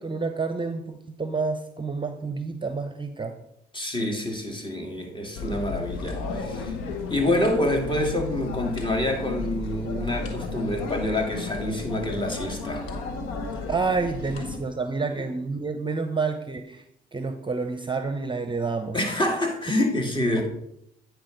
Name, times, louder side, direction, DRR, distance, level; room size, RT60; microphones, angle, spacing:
voice 1, 0.0-3.3 13.7-16.8 17.1-19.0 20.4-20.5, right 4 dB, 25° right, 8 dB, 0.8 m, -29 dB
voice 2, 3.7-6.8 7.1-12.9 15.1-15.3 18.9-20.5, left 1 dB, 25° left, 2 dB, 2.4 m, -27 dB
sound 1, 5.4-14.6, left 3 dB, 85° left, 1.3 m, -33 dB
9.4 x 4.7 x 5.2 m, 0.78 s
supercardioid pair, 55°, 21 cm